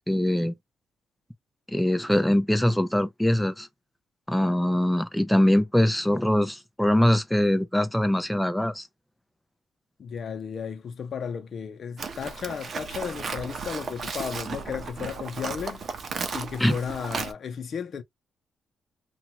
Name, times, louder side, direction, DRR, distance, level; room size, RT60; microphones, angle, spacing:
voice 1, 0.1-0.5 1.7-3.7 4.3-8.9 16.6-16.8, left 1 dB, 5° left, 0.6 m, -23 dB
voice 2, 10.0-15.8 16.3-18.0, left 7 dB, 55° left, 0.6 m, -34 dB
Livestock farm animals working animals, 12.0-17.3, right 5 dB, 50° right, 0.7 m, -35 dB
2.8 x 2.3 x 2.8 m
cardioid pair, 90°, 0 cm